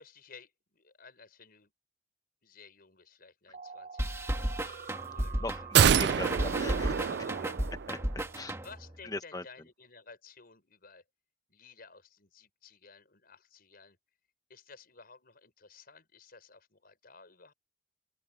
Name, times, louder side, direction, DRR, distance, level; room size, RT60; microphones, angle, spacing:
voice 1, 0.0-1.7 2.4-5.8 7.1-7.6 8.6-11.0 11.5-14.0 14.5-17.5, left 4 dB, 55° left, 5.6 m, -55 dB
sound 1, 3.5-7.4, right 5 dB, 50° right, 1.1 m, -46 dB
sound 2, 4.0-8.9, right 1 dB, 15° right, 1.5 m, -34 dB
voice 2, 5.4-7.1 7.9-8.0 8.3-8.6 9.1-9.4, left 2 dB, 20° left, 1.3 m, -39 dB
sound 3, 5.7-8.1 8.4-8.5, right 8 dB, 65° right, 0.4 m, -26 dB
open air
head